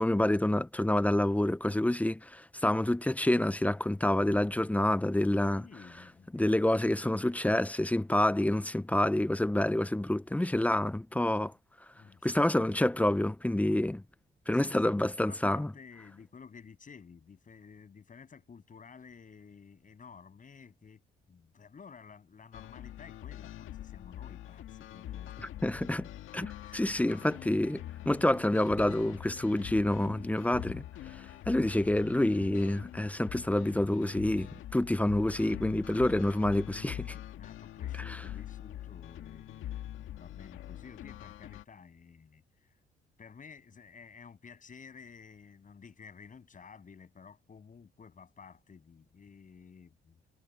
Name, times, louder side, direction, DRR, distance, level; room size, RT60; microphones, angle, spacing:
voice 1, 0.0-5.7 6.3-11.5 12.2-14.0 14.5-15.7 25.6-26.1 26.3-26.5 26.7-30.8 31.1-37.1 38.0-38.2, left 1 dB, 5° left, 0.8 m, -28 dB
voice 2, 5.5-6.5 11.9-12.4 14.5-21.0 21.3-25.5 26.4-26.8 36.9-42.8 43.2-50.2, left 6 dB, 40° left, 8.0 m, -53 dB
sound 1, 22.5-41.6, left 12 dB, 85° left, 1.9 m, -44 dB
cardioid pair, 90°, 20 cm